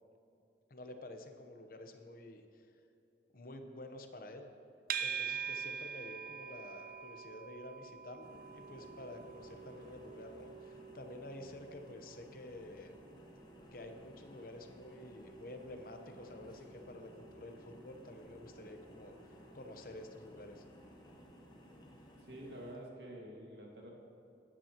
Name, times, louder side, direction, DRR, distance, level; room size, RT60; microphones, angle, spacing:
voice 1, 0.7-2.7 3.3-4.5 5.0-12.9 13.7-20.6, left 1 dB, 55° left, 6 dB, 0.9 m, -50 dB
sound 1, 4.9-22.1, right 7 dB, 50° right, 0.4 m, -47 dB
sound 2, 8.2-22.8, equal, 25° left, 1.1 m, -57 dB
voice 2, 22.2-23.9, right 1 dB, 75° right, -1 dB, 1.9 m, -48 dB
15.0 x 9.9 x 3.0 m, 2.8 s
head